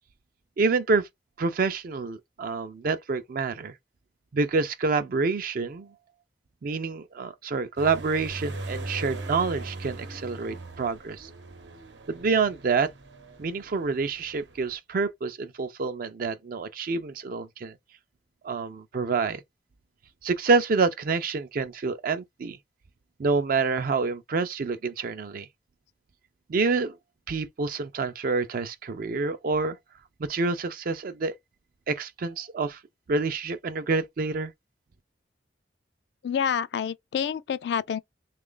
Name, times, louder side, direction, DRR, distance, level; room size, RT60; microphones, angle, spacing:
voice 1, 0.6-1.1 1.4-3.7 4.3-5.9 6.6-11.3 12.1-12.9 13.4-17.7 18.4-19.4 20.2-22.6 23.2-25.5 26.5-27.0 27.3-29.8 30.2-31.3 31.9-32.8 33.1-34.5, right 4 dB, 55° right, 0.4 m, -27 dB
sound 1, 7.8-14.8, right 2 dB, 90° right, 0.9 m, -40 dB
voice 2, 36.2-38.0, left 7 dB, 65° left, 0.3 m, -28 dB
3.2 x 2.4 x 3.7 m
head